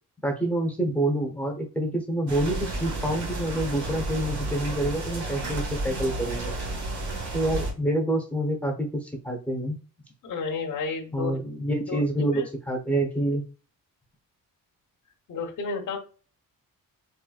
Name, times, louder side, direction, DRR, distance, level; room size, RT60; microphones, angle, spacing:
voice 1, 0.2-6.6 7.3-9.8 11.1-13.4, right 1 dB, 5° left, 1 dB, 1.0 m, -27 dB
sound 1, 2.3-7.7, right 2 dB, 55° right, 1.4 m, -32 dB
voice 2, 10.2-11.4 11.9-12.4 15.3-16.0, left 4 dB, 60° left, 0 dB, 1.0 m, -32 dB
4.5 x 3.4 x 2.4 m, 0.36 s
cardioid pair, 145°, 35 cm